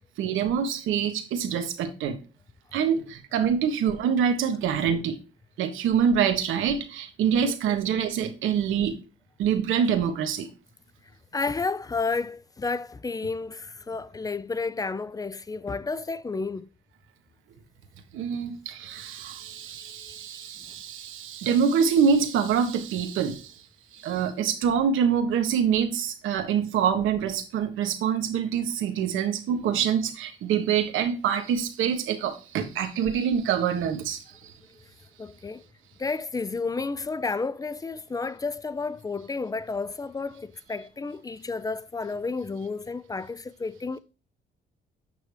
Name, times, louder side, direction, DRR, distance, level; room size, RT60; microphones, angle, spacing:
voice 1, 0.2-2.2 2.7-5.2 5.6-9.0 9.4-10.5 18.1-23.5 23.9-34.5, right 7 dB, 85° right, 1.4 m, -25 dB
voice 2, 11.3-16.7 19.9-20.3 35.2-35.6 36.0-44.0, left 4 dB, 20° left, 0.5 m, -31 dB
8.9 x 6.0 x 3.3 m
cardioid pair, 90°, 20 cm